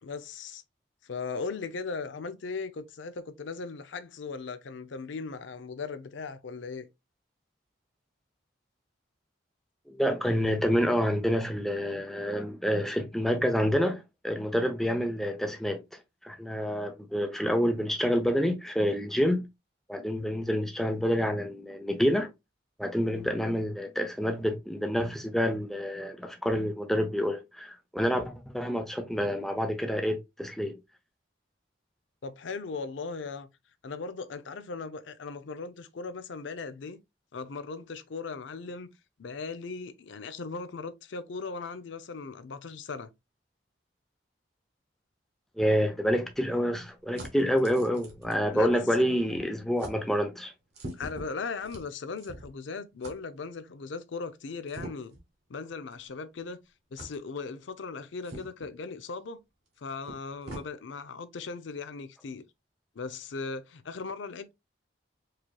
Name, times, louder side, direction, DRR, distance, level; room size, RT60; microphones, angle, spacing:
voice 1, 0.0-0.6 1.0-6.9 32.2-33.5 33.8-37.0 37.3-38.9 39.2-43.1 48.5-48.8 50.9-55.2 55.5-56.6 56.9-59.4 59.8-62.4 63.0-64.5, left 4 dB, 75° left, 0.5 m, -38 dB
voice 2, 9.9-15.8 16.2-19.5 19.9-22.3 22.8-30.8 45.6-50.5, equal, ahead, 0.5 m, -28 dB
sound 1, 45.6-49.1 49.3-49.5 49.8-50.0 50.7-52.6 53.0-53.2 54.7-55.2 55.9-56.0 57.0-57.2 58.2-58.7 59.7-59.8 60.0-60.7, right 1 dB, 55° right, 1.4 m, -44 dB
4.8 x 2.9 x 2.2 m
head